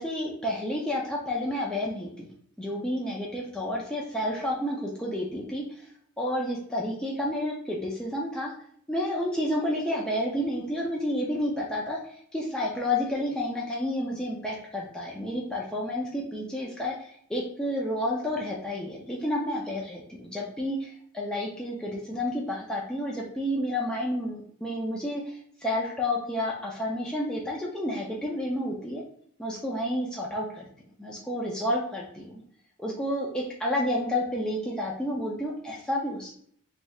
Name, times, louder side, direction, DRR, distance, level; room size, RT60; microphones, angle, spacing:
voice 1, 0.0-2.3 2.6-5.9 6.2-8.5 8.9-29.0 29.4-30.6 31.0-32.4 32.8-36.3, left 1 dB, 5° left, -4 dB, 0.3 m, -30 dB
3.2 x 2.7 x 2.3 m, 0.63 s
head